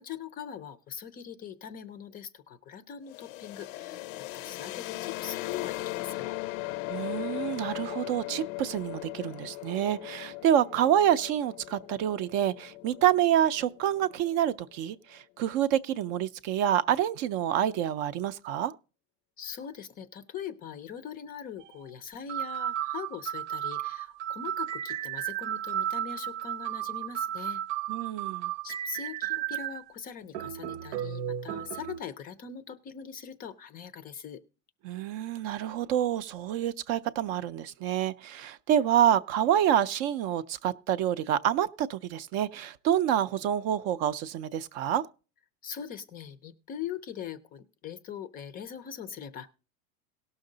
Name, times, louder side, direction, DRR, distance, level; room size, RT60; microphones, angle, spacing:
voice 1, 0.0-4.0 4.3-6.4 19.4-27.6 28.6-34.4 45.6-49.5, left 8 dB, 25° left, 0.4 m, -41 dB
sound 1, 3.1-14.8, left 18 dB, 80° left, 0.6 m, -38 dB
voice 2, 6.9-18.7 27.9-28.5 34.8-45.1, right 10 dB, 45° right, 0.4 m, -27 dB
sound 2, 21.6-21.7 22.3-29.8 30.3-32.0, right 11 dB, 80° right, 0.8 m, -34 dB
17.5 x 6.3 x 3.8 m
cardioid pair, 170°, 39 cm